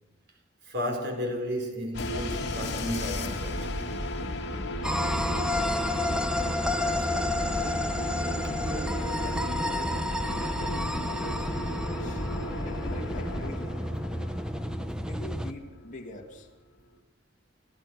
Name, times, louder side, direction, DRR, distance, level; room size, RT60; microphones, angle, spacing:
voice 1, 0.6-3.8, equal, 60° right, 4.6 m, -33 dB
sound 1, 1.9-15.9, left 1 dB, 60° left, 3.2 m, -34 dB
sound 2, 4.8-15.5, left 1 dB, 5° right, 1.1 m, -31 dB
voice 2, 6.7-7.8 8.5-10.0 10.4-11.5 12.0-12.3 12.6-13.8 15.1-16.5, left 1 dB, 40° left, 3.1 m, -43 dB
29.5 x 15.5 x 6.4 m
head